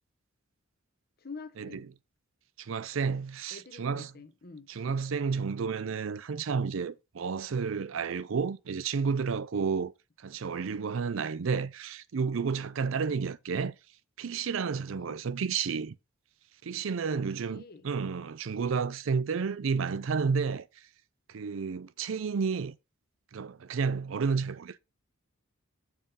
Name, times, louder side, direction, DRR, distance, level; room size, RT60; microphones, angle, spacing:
voice 1, 1.2-1.9 3.5-4.7 13.1-13.4 14.9-15.2 17.4-17.9, left 4 dB, 45° left, 0.9 m, -47 dB
voice 2, 2.6-4.1 4.7-9.9 10.2-13.7 14.2-16.0 16.6-20.7 21.3-22.8 23.3-24.8, right 5 dB, 70° right, 0.5 m, -31 dB
7.3 x 3.8 x 5.5 m
head